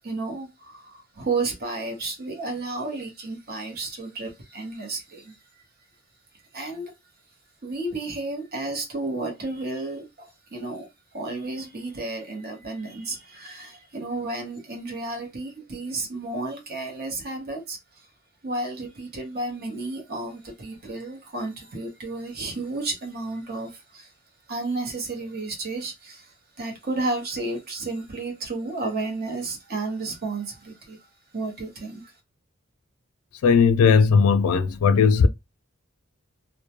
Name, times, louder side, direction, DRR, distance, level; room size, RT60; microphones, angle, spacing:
voice 1, 0.0-5.4 6.5-6.9 7.6-10.9 11.1-18.1 18.4-24.1 24.5-32.1, right 2 dB, 50° right, 0.8 m, -32 dB
voice 2, 33.4-35.3, left 5 dB, 90° left, 0.3 m, -17 dB
2.2 x 2.1 x 2.8 m
head